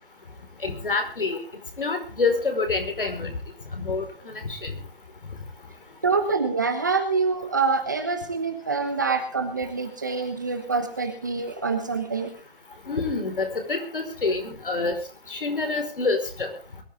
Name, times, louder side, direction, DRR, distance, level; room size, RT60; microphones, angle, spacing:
voice 1, 0.6-1.4 1.8-3.3 3.7-4.7 12.9-15.0 15.3-16.5, left 3 dB, 60° left, 6 dB, 5.0 m, -27 dB
voice 2, 6.0-12.3, right 4 dB, 20° right, 5 dB, 1.0 m, -26 dB
22.5 x 12.5 x 3.7 m, 0.36 s
hypercardioid pair, 180°, 30 cm